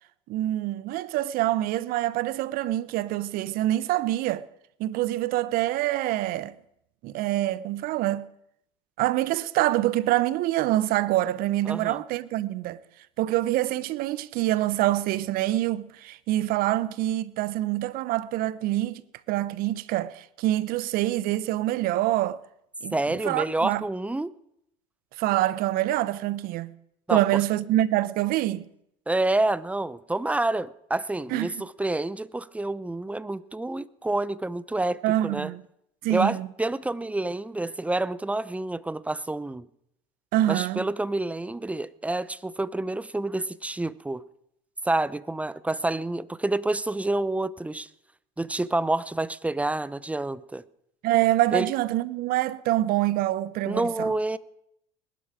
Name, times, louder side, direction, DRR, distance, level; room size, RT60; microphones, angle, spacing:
voice 1, 0.3-4.5 4.8-6.5 7.0-8.3 9.0-12.8 13.2-19.0 19.3-22.4 22.8-23.8 25.2-26.7 27.1-28.6 31.3-31.5 35.0-35.6 36.0-36.5 40.3-40.9 51.0-54.1, right 15 dB, 60° right, 0.9 m, -25 dB
voice 2, 11.7-12.0 22.9-24.3 27.1-27.2 29.1-35.5 36.1-39.7 40.5-44.2 44.8-47.9 48.4-50.6 51.5-51.7 53.7-54.4, right 2 dB, 10° right, 0.7 m, -28 dB
20.5 x 11.5 x 5.0 m
hypercardioid pair, 80°, 17 cm